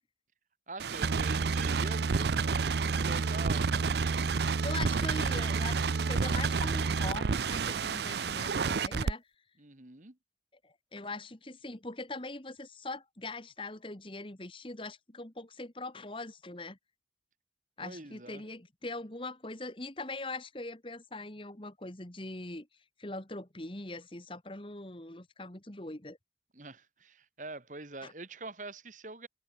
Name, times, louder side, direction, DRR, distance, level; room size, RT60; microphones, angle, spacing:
voice 1, 0.7-3.8 9.6-10.2 17.8-18.5 26.5-29.3, right 3 dB, 45° right, 1.9 m, -44 dB
sound 1, 0.8-9.1, right 5 dB, 70° right, 0.5 m, -29 dB
voice 2, 4.6-9.2 10.6-16.8 17.8-22.7 23.0-26.2 28.0-28.1, left 2 dB, 30° left, 1.9 m, -42 dB
head